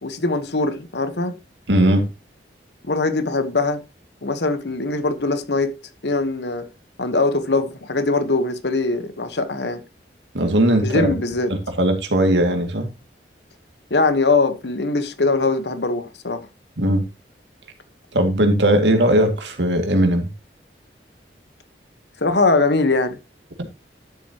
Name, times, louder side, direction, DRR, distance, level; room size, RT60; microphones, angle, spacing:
voice 1, 0.0-1.3 2.9-3.8 4.2-5.7 6.0-6.7 7.0-9.8 10.8-11.5 13.9-16.5 22.2-23.2, left 3 dB, 70° left, 1.2 m, -21 dB
voice 2, 1.7-2.1 10.3-11.2 11.8-12.9 16.8-17.0 18.1-20.3 23.6-23.7, right 1 dB, 85° right, 2.3 m, -18 dB
12.5 x 7.6 x 2.9 m
head